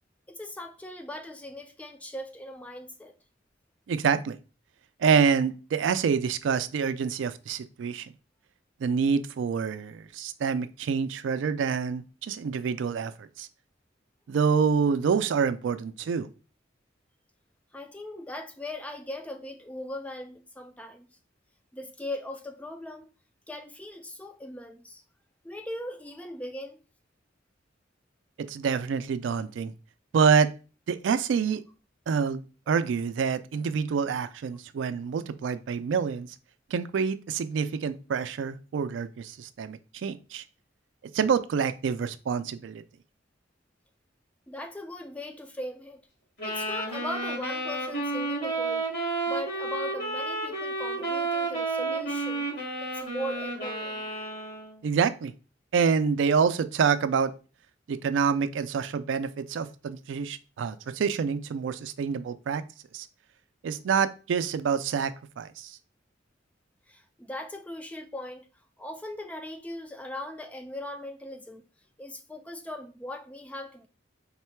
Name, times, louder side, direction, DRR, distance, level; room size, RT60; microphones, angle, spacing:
voice 1, 0.3-3.1 17.7-21.1 21.7-23.1 23.5-25.0 25.4-26.8 44.5-46.0 46.4-48.9 49.3-52.5 52.8-54.1 66.9-68.5 68.8-71.7 72.0-73.9, left 1 dB, 5° left, 0.3 m, -39 dB
voice 2, 3.9-4.4 5.0-8.1 8.8-13.5 14.3-16.3 28.4-29.7 30.1-30.5 30.9-31.6 32.1-36.3 36.7-40.4 41.1-42.8 54.8-55.3 55.7-57.3 57.9-62.6 62.9-63.1 63.6-65.8, right 6 dB, 85° right, 0.3 m, -27 dB
sound 1, 46.4-54.8, right 2 dB, 65° left, 2.0 m, -31 dB
3.5 x 2.2 x 4.4 m
head